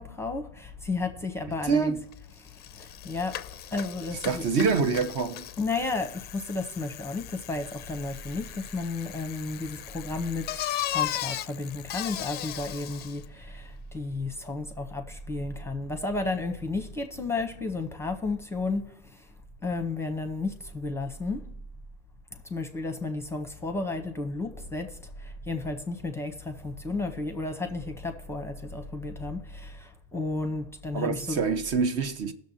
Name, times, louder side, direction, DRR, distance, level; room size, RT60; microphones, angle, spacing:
voice 1, 0.0-1.9 2.8-3.4 3.7-4.4 5.6-18.8 19.6-21.4 22.5-24.9 25.2-31.4, left 3 dB, 5° left, 0.8 m, -32 dB
voice 2, 1.5-2.0 4.1-5.5 30.9-32.3, right 5 dB, 45° right, 0.9 m, -26 dB
Bicycle, 2.1-2.2 2.5-13.3, left 13 dB, 30° left, 0.5 m, -37 dB
18.0 x 6.5 x 2.8 m
hypercardioid pair, 105°, 35 cm